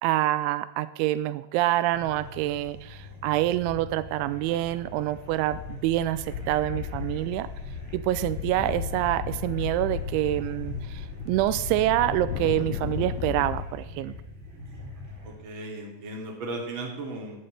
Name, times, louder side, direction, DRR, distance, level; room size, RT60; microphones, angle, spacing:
voice 1, 0.0-7.5 7.9-14.1, right 15 dB, 85° right, 15 dB, 2.9 m, -26 dB
sound 1, 1.9-15.3, left 1 dB, 65° right, 6.9 m, -42 dB
sound 2, 4.7-4.9 5.2-13.6, left 8 dB, 85° left, 2.2 m, -35 dB
voice 2, 15.2-17.5, right 2 dB, 35° right, 0 dB, 2.7 m, -36 dB
16.5 x 12.0 x 3.3 m, 0.96 s
omnidirectional pair, 5.3 m